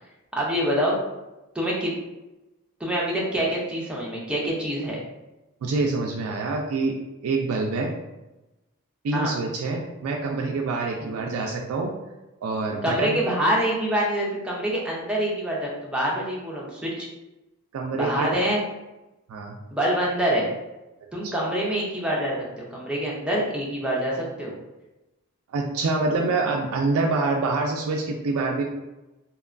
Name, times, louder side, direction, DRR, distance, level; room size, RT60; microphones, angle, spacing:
voice 1, 0.3-0.9 1.5-1.9 2.8-5.0 9.1-9.3 11.0-11.1 12.8-17.1 17.9-18.6 19.7-20.5 21.1-24.6, right 1 dB, 5° right, -4 dB, 0.5 m, -26 dB
voice 2, 5.6-6.9 7.2-7.9 9.0-11.9 12.4-13.2 17.7-18.3 19.3-19.6 21.2-21.5 25.5-28.6, right 3 dB, 85° right, 0 dB, 0.3 m, -26 dB
2.8 x 2.2 x 2.4 m, 1.0 s
head